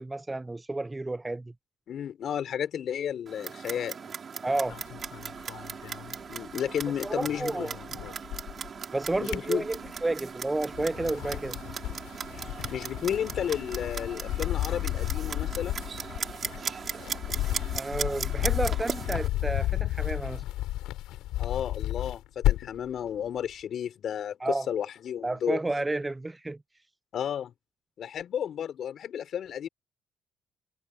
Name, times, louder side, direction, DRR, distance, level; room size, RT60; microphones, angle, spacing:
voice 1, 0.0-1.5 4.4-4.8 7.0-7.8 8.9-11.6 17.7-20.4 24.4-24.7 25.2-26.6, right 2 dB, 15° right, 0.5 m, -31 dB
voice 2, 1.9-4.1 6.3-7.8 9.2-9.7 12.7-15.9 21.4-25.6 27.1-27.5 28.0-29.7, left 9 dB, 60° left, 4.0 m, -33 dB
Clock, 3.3-19.3, right 6 dB, 45° right, 4.9 m, -38 dB
sound 1, 4.7-6.8 7.1-8.7 9.1-10.1 10.6-22.9, left 15 dB, 90° left, 4.2 m, -32 dB
cardioid pair, 90°, 0 cm